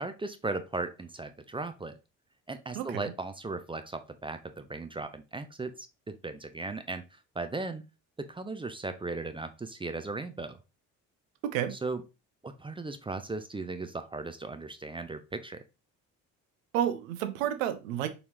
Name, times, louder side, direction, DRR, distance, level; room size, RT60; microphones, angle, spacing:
voice 1, 0.0-1.9 2.5-7.0 7.4-7.8 8.2-10.6 11.7-12.0 12.4-15.6, right 3 dB, 15° right, 0.4 m, -37 dB
voice 2, 2.7-3.1 11.4-11.8 16.7-18.1, right 10 dB, 85° right, 0.6 m, -30 dB
3.9 x 3.0 x 2.9 m
hypercardioid pair, 55°, 39 cm